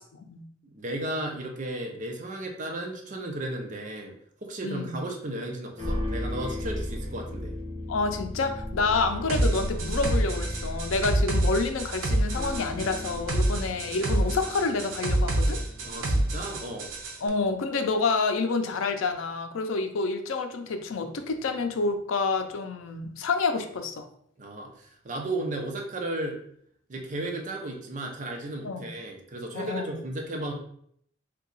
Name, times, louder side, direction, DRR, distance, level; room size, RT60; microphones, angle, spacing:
voice 1, 0.1-0.5 4.6-5.0 7.9-15.6 17.2-24.1 28.6-28.9 29.5-30.0, left 4 dB, 90° left, 7 dB, 0.4 m, -28 dB
voice 2, 0.6-4.1 4.4-7.5 15.8-16.9 24.4-26.4 26.9-30.5, right 1 dB, 40° right, 2 dB, 0.5 m, -34 dB
sound 1, 5.8-17.2, equal, 30° left, 1.3 m, -36 dB
sound 2, 9.3-17.2, right 1 dB, 85° right, 0.6 m, -27 dB
2.8 x 2.2 x 3.9 m, 0.66 s
head